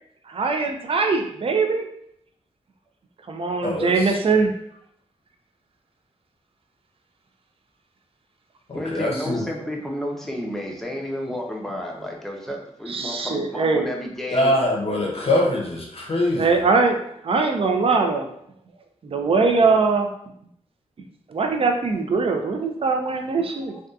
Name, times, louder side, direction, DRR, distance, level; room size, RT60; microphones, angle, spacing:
voice 1, 0.3-1.9 3.3-4.5 12.9-13.9 16.4-17.0 17.2-18.3 19.0-20.1 21.3-23.8, right 4 dB, 50° right, 5 dB, 0.4 m, -21 dB
voice 2, 3.6-4.2 8.7-9.4 14.3-16.6, left 1 dB, 50° left, -1 dB, 0.6 m, -23 dB
voice 3, 8.7-14.6 23.7-23.8, left 1 dB, 5° left, -1 dB, 0.6 m, -31 dB
2.6 x 2.3 x 2.3 m, 0.72 s
cardioid pair, 60°, 13 cm